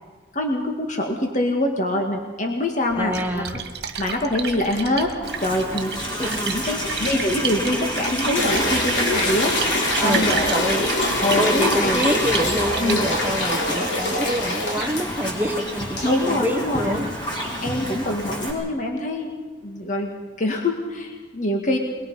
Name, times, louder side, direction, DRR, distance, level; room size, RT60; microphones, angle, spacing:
voice 1, 0.3-3.4 4.0-5.1 5.4-6.0 6.5-9.6 10.0-10.6 11.2-12.0 12.8-13.0 16.0-17.0 17.6-19.3 19.6-21.8, left 1 dB, 45° left, 2 dB, 1.9 m, -24 dB
voice 2, 2.9-3.6 6.2-6.6 10.0-10.9 11.2-17.1, equal, 10° right, 4 dB, 1.0 m, -27 dB
Splash splatter, 2.9-13.5, right 6 dB, 65° right, 1.9 m, -33 dB
Livestock farm animals working animals, 5.2-18.5, equal, 25° left, 4.6 m, -28 dB
sound 1, 8.4-16.4, left 2 dB, 80° left, 3.4 m, -26 dB
23.0 x 21.5 x 5.6 m, 1.4 s
head